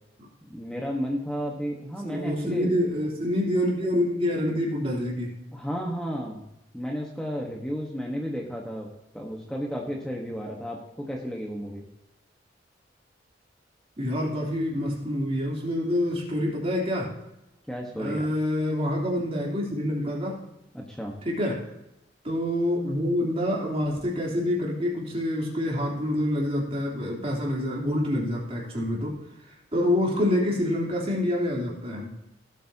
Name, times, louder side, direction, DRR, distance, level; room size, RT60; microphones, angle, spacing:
voice 1, 0.4-2.7 5.5-6.5 6.7-11.8 17.7-18.3 20.7-21.2, equal, 5° left, -1 dB, 1.2 m, -33 dB
voice 2, 2.0-5.3 14.0-17.1 18.0-20.4 21.2-21.6 22.2-29.2 29.7-32.1, left 1 dB, 35° right, -2 dB, 3.3 m, -27 dB
17.0 x 8.3 x 2.8 m, 0.87 s
head